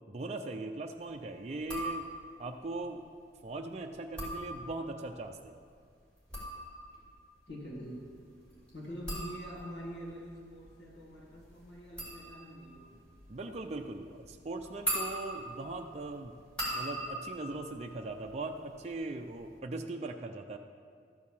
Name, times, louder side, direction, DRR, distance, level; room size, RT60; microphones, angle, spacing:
voice 1, 0.1-2.1 2.4-3.1 3.4-5.6 13.3-16.4 16.7-20.6, right 2 dB, 40° right, 3 dB, 0.5 m, -40 dB
sound 1, 1.6-2.4 4.0-5.1 6.0-18.8 19.0-19.6, right 1 dB, 5° left, 2.8 m, -41 dB
voice 2, 7.5-8.1 8.7-13.0, equal, 80° left, -3 dB, 1.7 m, -45 dB
13.0 x 4.7 x 7.1 m, 2.1 s
head